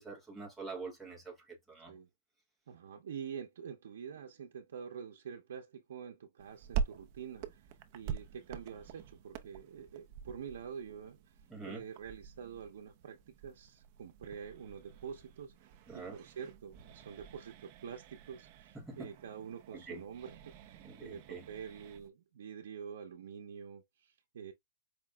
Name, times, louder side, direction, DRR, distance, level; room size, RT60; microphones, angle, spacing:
voice 1, 0.0-2.0 11.5-11.8 15.9-16.2 18.7-19.1 19.7-20.0 20.8-21.4, right 3 dB, ahead, 1.0 m, -45 dB
voice 2, 2.7-24.5, right 7 dB, 80° right, 0.7 m, -47 dB
sound 1, 6.4-22.1, right 7 dB, 35° right, 0.5 m, -45 dB
5.0 x 2.9 x 2.3 m
supercardioid pair, 175°, 0 cm